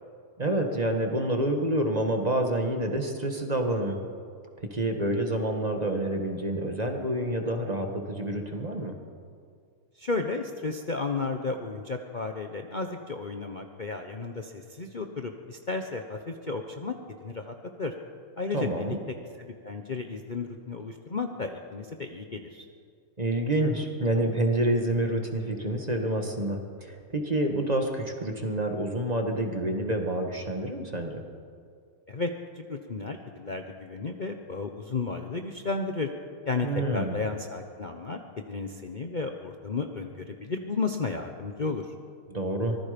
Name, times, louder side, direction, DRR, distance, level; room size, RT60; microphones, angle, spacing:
voice 1, 0.4-4.0 4.7-8.9 18.5-19.0 23.2-31.2 36.6-37.2 42.3-42.8, right 1 dB, 20° right, 3 dB, 1.7 m, -28 dB
voice 2, 10.0-16.9 17.2-17.9 18.4-18.9 19.4-22.7 32.1-32.3 32.7-36.1 36.4-41.9, left 4 dB, 65° left, 4 dB, 0.4 m, -33 dB
25.0 x 19.5 x 5.3 m, 2.2 s
omnidirectional pair, 2.4 m